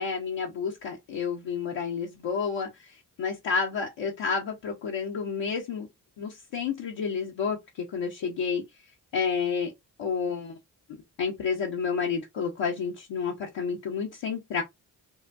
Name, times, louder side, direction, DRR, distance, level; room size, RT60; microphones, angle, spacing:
voice 1, 0.0-5.9 6.2-8.6 9.1-9.7 10.0-10.6 11.2-14.6, left 6 dB, 75° left, 0.8 m, -30 dB
3.9 x 2.1 x 2.4 m
supercardioid pair, 40°, 45 cm